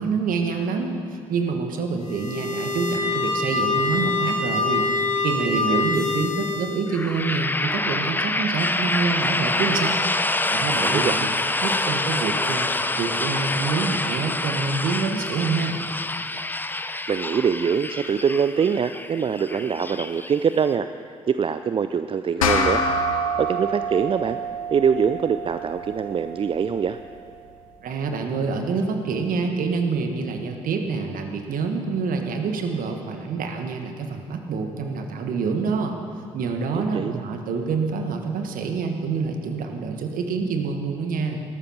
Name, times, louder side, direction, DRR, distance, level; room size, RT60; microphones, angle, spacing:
voice 1, 0.0-4.9 5.2-10.1 10.5-11.3 11.6-15.8 27.8-36.0 36.3-41.4, right 4 dB, 55° right, 5 dB, 1.6 m, -27 dB
sound 1, 2.0-6.9, left 3 dB, 90° right, 3.1 m, -25 dB
voice 2, 5.4-5.8 10.8-11.2 17.1-20.9 21.3-22.8 23.4-24.4 24.7-27.0 36.7-37.2, right 6 dB, 30° right, 11 dB, 0.5 m, -23 dB
sound 2, 6.9-20.7, left 2 dB, 10° left, 0.7 m, -26 dB
sound 3, 22.4-27.2, equal, 80° left, 0.9 m, -27 dB
20.0 x 13.0 x 4.3 m, 2.3 s
figure-of-eight pair, 45°, 17 cm